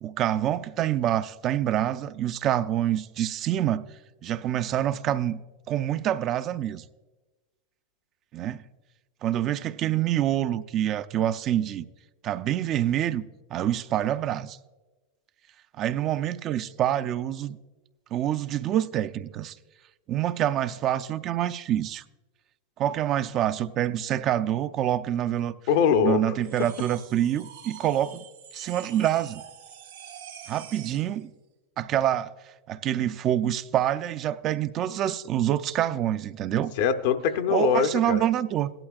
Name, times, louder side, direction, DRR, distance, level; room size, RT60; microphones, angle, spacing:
voice 1, 0.0-3.8 4.2-5.4 5.7-6.8 8.3-8.6 9.2-11.9 12.2-13.2 13.5-14.6 15.8-17.6 18.1-19.5 20.1-22.0 22.8-25.6 26.0-28.2 28.5-29.4 30.5-31.3 31.8-32.3 32.7-36.7 37.5-38.7, right 11 dB, 40° right, 0.4 m, -26 dB
voice 2, 25.7-26.2 36.8-38.3, left 7 dB, 65° left, 0.7 m, -22 dB
sound 1, 26.4-31.1, right 8 dB, 85° right, 1.4 m, -45 dB
16.5 x 12.0 x 2.4 m
hypercardioid pair, 100°, 0 cm